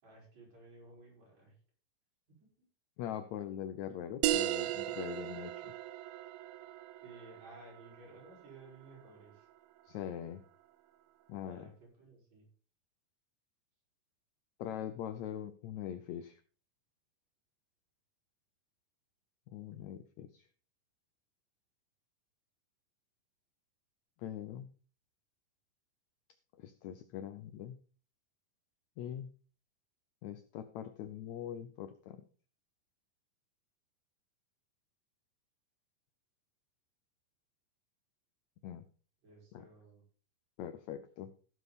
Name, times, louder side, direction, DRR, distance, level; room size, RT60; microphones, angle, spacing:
voice 1, 0.0-1.5 2.3-2.4 7.0-9.5 11.4-12.5 39.2-40.0, right 2 dB, 50° right, -3 dB, 6.7 m, -56 dB
voice 2, 3.0-5.7 9.9-10.4 11.3-11.7 14.6-16.4 19.5-20.4 24.2-24.7 26.6-27.8 29.0-29.3 30.2-32.2 38.6-38.8 39.5-39.7 40.6-41.3, left 10 dB, 75° left, 11 dB, 1.7 m, -42 dB
sound 1, 4.2-9.3, right 13 dB, 90° right, 2.4 m, -37 dB
15.5 x 7.2 x 4.2 m, 0.40 s
omnidirectional pair, 3.9 m